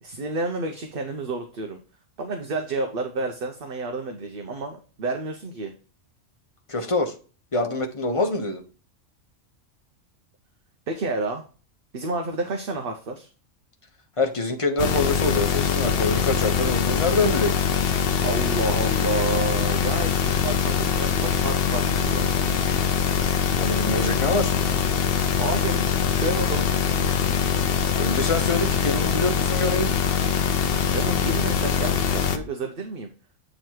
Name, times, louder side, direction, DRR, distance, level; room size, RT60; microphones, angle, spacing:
voice 1, 0.0-1.8 2.2-5.7 10.9-11.4 11.9-13.3 18.2-22.5 25.4-26.7 30.8-33.1, right 2 dB, 50° right, 4 dB, 0.9 m, -30 dB
voice 2, 6.7-7.1 7.5-8.6 14.2-17.6 23.6-24.5 28.0-29.9, left 2 dB, 30° left, 3 dB, 0.9 m, -25 dB
sound 1, 14.8-32.4, left 7 dB, 55° left, 0.8 m, -23 dB
8.8 x 3.1 x 4.6 m, 0.37 s
omnidirectional pair, 1.3 m